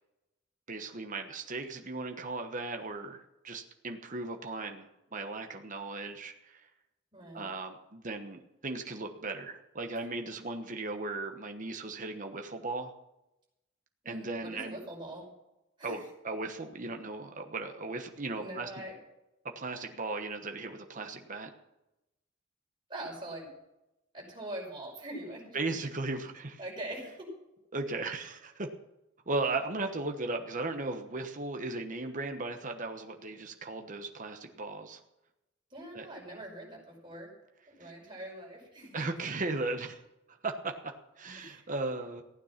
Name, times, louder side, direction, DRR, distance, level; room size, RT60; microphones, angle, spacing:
voice 1, 0.7-6.7 7.3-12.9 14.0-14.8 15.8-18.7 19.5-21.5 25.5-26.6 27.7-28.7 29.3-35.0 35.9-36.0 37.8-37.9 38.9-40.0 40.3-42.2, right 3 dB, 40° right, 5 dB, 1.2 m, -37 dB
voice 2, 7.1-7.5 14.0-15.3 15.8-16.0 18.4-19.0 22.9-23.5 24.1-25.6 26.6-27.3 35.7-37.3 37.7-39.0 41.4-41.7, right 1 dB, 25° right, -3 dB, 5.7 m, -43 dB
15.5 x 9.4 x 5.9 m, 0.91 s
head